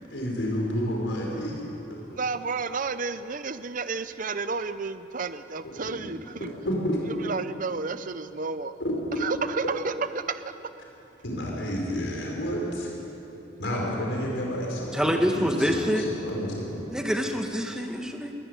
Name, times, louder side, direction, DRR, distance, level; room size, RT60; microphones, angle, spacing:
voice 1, 0.1-1.6 1.9-2.0 5.8-6.0 6.6-7.0 8.8-8.9 11.2-12.9 13.6-16.9, equal, 65° left, -2 dB, 4.8 m, -30 dB
voice 2, 2.0-6.5 7.2-8.7 9.2-10.5, right 4 dB, 40° right, 12 dB, 0.6 m, -31 dB
voice 3, 14.9-16.1 16.9-18.3, equal, 5° right, 3 dB, 1.5 m, -26 dB
22.5 x 14.5 x 9.6 m, 3.0 s
head